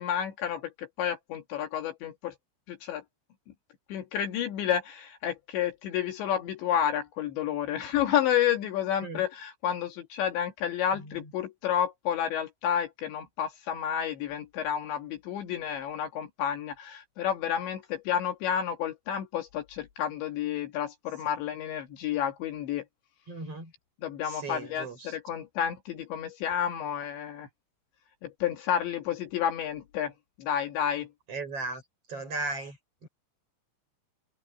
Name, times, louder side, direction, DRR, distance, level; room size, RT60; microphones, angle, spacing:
voice 1, 0.0-2.4 2.7-3.0 3.9-22.9 24.0-27.5 28.2-31.1, left 9 dB, 70° left, 3.9 m, -30 dB
voice 2, 23.3-23.7 24.2-25.1 31.3-31.8 32.1-32.8 33.0-33.1, right 3 dB, 30° right, 6.7 m, -36 dB
omnidirectional pair, 5.7 m